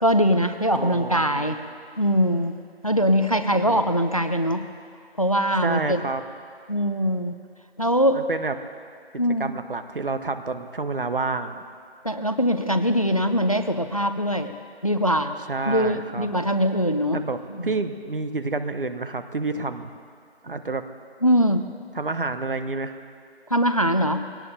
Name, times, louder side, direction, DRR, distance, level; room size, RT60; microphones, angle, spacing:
voice 1, 0.0-1.6 2.0-2.5 2.8-4.7 5.2-6.0 6.7-7.3 7.8-8.2 9.2-9.5 12.0-14.5 14.8-15.3 15.7-17.2 17.5-17.7 21.2-21.7 23.5-24.3, equal, 35° left, 9 dB, 0.5 m, -22 dB
voice 2, 0.7-1.5 3.5-3.9 5.6-6.2 8.1-8.6 9.4-11.6 15.5-16.3 17.1-19.9 20.4-20.8 21.9-22.9, right 3 dB, 55° right, 9 dB, 1.0 m, -29 dB
23.5 x 17.5 x 2.7 m, 2.3 s
figure-of-eight pair, 170°, 32 cm